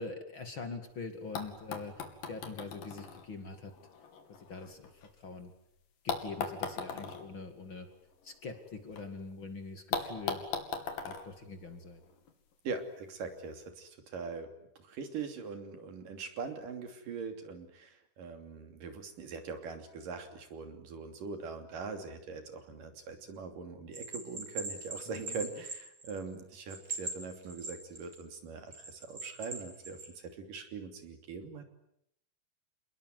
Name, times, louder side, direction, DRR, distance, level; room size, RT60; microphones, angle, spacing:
voice 1, 0.0-3.7 4.4-4.9 5.2-5.5 6.0-7.9 8.2-10.4 11.0-12.0 25.1-25.4, left 4 dB, 40° left, 7 dB, 2.7 m, -43 dB
sound 1, 0.9-1.0 1.3-5.4 6.1-9.0 9.3-9.4 9.9-12.3 13.3-13.4, left 5 dB, 85° left, 4.4 m, -40 dB
voice 2, 12.6-14.5 14.8-31.7, right 4 dB, 80° right, 6 dB, 4.6 m, -42 dB
Bell, 23.9-26.3 26.7-28.2 28.7-30.1, right 3 dB, 35° right, 6.4 m, -41 dB
29.0 x 20.5 x 9.6 m, 0.75 s
omnidirectional pair, 3.8 m